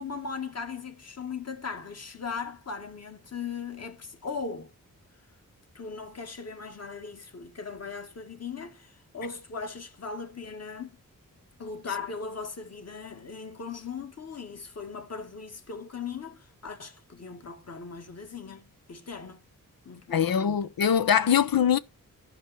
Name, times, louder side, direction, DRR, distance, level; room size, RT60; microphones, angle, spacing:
voice 1, 0.0-4.7 5.8-11.0 11.6-19.4 19.9-20.6, left 5 dB, 45° left, 1.8 m, -38 dB
voice 2, 20.1-21.8, left 8 dB, 85° left, 0.9 m, -22 dB
12.5 x 5.2 x 7.3 m
wide cardioid pair, 150°, 34 cm